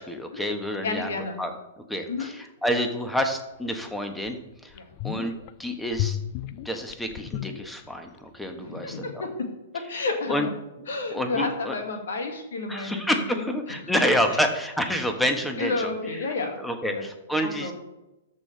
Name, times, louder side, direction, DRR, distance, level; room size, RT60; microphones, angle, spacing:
voice 1, 0.0-4.7 5.0-5.3 5.6-6.2 6.6-9.0 10.3-10.5 11.1-11.7 12.7-15.9 16.6-17.7, equal, 5° left, 5 dB, 1.3 m, -28 dB
voice 2, 0.8-1.4 2.1-2.3 4.7-4.9 8.6-9.5 9.9-10.5 10.9-14.4 15.6-17.0 17.4-17.7, left 3 dB, 65° left, 3 dB, 2.2 m, -31 dB
sound 1, 3.7-3.8 4.3-4.4 4.7-5.5 5.9-8.2 8.4-8.5, left 12 dB, 40° left, 0.5 m, -33 dB
13.5 x 5.6 x 3.5 m, 0.97 s
figure-of-eight pair, 110°, 0 cm